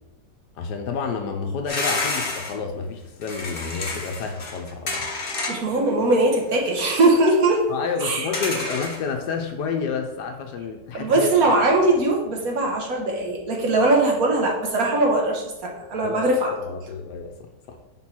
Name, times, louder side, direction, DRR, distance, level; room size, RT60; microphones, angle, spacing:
voice 1, 0.5-5.1 7.7-11.3 16.0-16.3 16.7-17.8, left 5 dB, 70° left, 4 dB, 1.3 m, -30 dB
sound 1, 1.7-2.5 3.2-5.8 6.1-6.2 8.3-9.0, left 3 dB, 40° left, 0.9 m, -29 dB
voice 2, 5.5-7.7 8.0-8.6 10.9-16.5, right 2 dB, 60° right, 0 dB, 1.4 m, -21 dB
6.2 x 3.8 x 4.3 m, 0.98 s
omnidirectional pair, 1.9 m